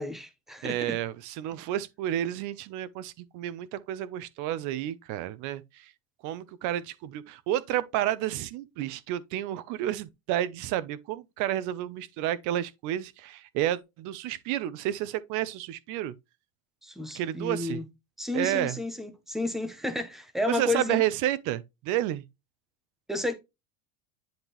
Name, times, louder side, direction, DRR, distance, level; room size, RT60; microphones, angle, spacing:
voice 1, 0.0-1.0 16.8-17.9 18.2-21.0 23.1-23.3, left 2 dB, ahead, 0.6 m, -31 dB
voice 2, 0.6-5.9 6.2-16.1 17.1-17.8 18.3-18.8 20.5-22.2, right 12 dB, 40° right, 0.7 m, -30 dB
10.5 x 3.6 x 3.0 m
cardioid pair, 165°, 45 cm